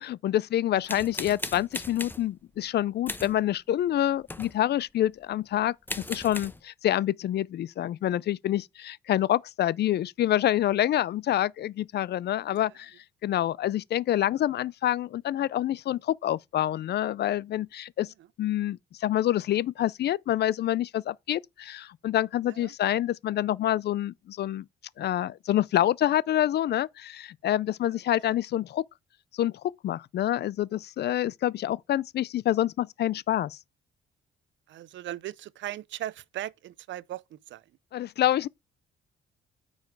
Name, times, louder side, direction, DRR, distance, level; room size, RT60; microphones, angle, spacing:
voice 1, 0.0-12.9 13.2-18.1 18.4-24.7 25.0-28.8 29.3-29.5 29.8-33.6 37.9-38.5, left 12 dB, 55° left, 0.4 m, -27 dB
sound 1, 0.8-2.3 3.1-3.4 4.2-4.6 5.5-5.6 5.9-6.6, left 2 dB, 10° left, 0.9 m, -37 dB
voice 2, 34.7-37.6, right 13 dB, 70° right, 0.5 m, -38 dB
8.8 x 5.4 x 4.6 m
cardioid pair, 90°, 20 cm